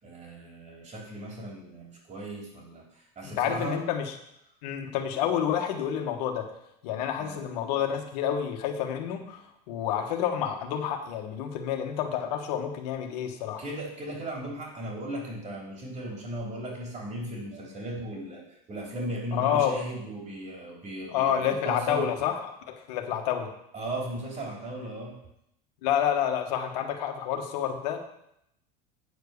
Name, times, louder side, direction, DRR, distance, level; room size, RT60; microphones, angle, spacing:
voice 1, 0.0-3.8 7.2-7.5 13.6-22.1 23.7-25.2, right 1 dB, 35° right, -1 dB, 3.5 m, -37 dB
voice 2, 3.4-4.1 4.6-6.5 6.8-9.4 9.7-13.6 19.3-19.8 21.1-23.5 25.8-28.0, left 9 dB, 80° left, 4 dB, 1.4 m, -29 dB
9.0 x 4.7 x 6.8 m, 0.77 s
supercardioid pair, 95°, 21 cm